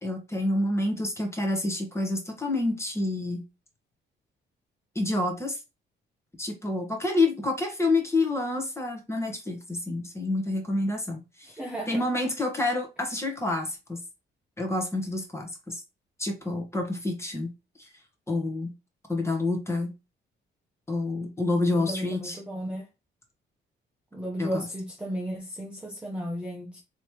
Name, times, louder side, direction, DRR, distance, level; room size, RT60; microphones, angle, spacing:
voice 1, 0.0-3.4 4.9-5.6 6.4-11.6 11.9-14.0 14.6-15.8 16.2-17.5 17.8-17.9 18.3-18.7 19.1-19.9 20.9-22.4 24.4-24.6, left 2 dB, 15° left, 1.2 m, -28 dB
voice 2, 11.5-12.1 21.7-22.9 24.1-26.8, equal, 5° right, 0.8 m, -34 dB
3.2 x 2.9 x 2.9 m
cardioid pair, 90°, 20 cm